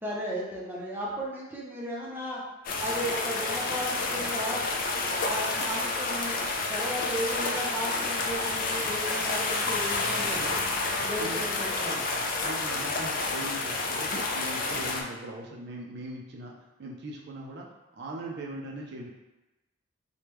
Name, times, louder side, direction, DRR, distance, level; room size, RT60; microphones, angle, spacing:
voice 1, 0.0-2.4 2.8-4.6 5.2-6.4 6.7-10.5 11.0-12.0, equal, 10° right, -5 dB, 0.6 m, -35 dB
sound 1, 2.7-15.0, left 3 dB, 45° left, 0.3 m, -29 dB
voice 2, 11.0-11.5 12.1-19.1, right 1 dB, 60° right, 0 dB, 0.4 m, -40 dB
3.3 x 2.1 x 3.0 m, 1.0 s
head